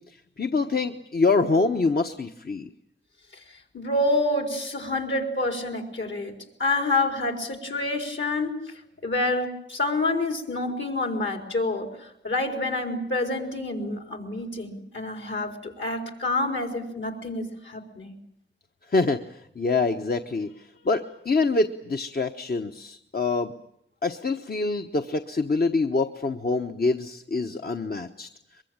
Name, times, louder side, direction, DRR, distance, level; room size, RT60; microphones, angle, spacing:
voice 1, 0.4-2.7 18.9-19.2 19.6-23.5 24.0-28.3, left 3 dB, 50° left, 5 dB, 1.1 m, -25 dB
voice 2, 3.7-6.3 6.6-8.6 9.0-18.2, left 2 dB, 70° left, 4 dB, 4.4 m, -28 dB
23.0 x 22.5 x 8.8 m, 0.74 s
wide cardioid pair, 70°, 20 cm